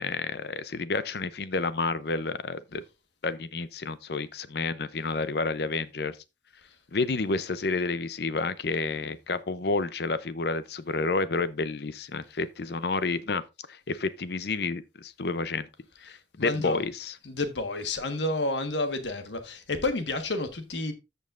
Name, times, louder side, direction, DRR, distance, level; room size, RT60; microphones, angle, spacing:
voice 1, 0.0-2.8 3.2-6.2 6.9-13.4 13.7-15.7 16.0-17.1, left 3 dB, 60° left, 0.6 m, -30 dB
voice 2, 16.4-16.8 17.2-20.9, left 2 dB, 75° left, 1.4 m, -30 dB
14.0 x 5.4 x 2.5 m
head